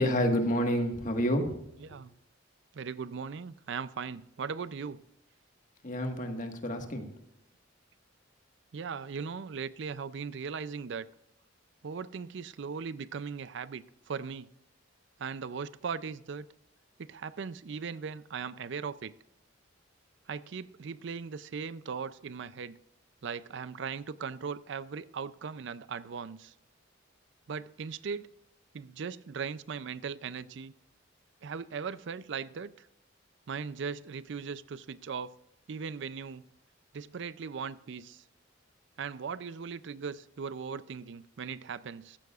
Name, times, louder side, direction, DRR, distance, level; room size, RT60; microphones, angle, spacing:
voice 1, 0.0-1.6 5.8-7.1, equal, 45° left, 1.6 m, -29 dB
voice 2, 1.8-2.1 2.7-5.0 8.7-11.1 11.8-14.5 15.2-16.5 17.0-19.1 20.3-22.8 23.2-26.5 27.5-28.3 28.7-30.7 31.4-32.9 33.5-35.3 35.7-36.5 36.9-38.2 39.0-42.2, right 6 dB, 65° right, 0.5 m, -38 dB
14.5 x 14.0 x 2.4 m
head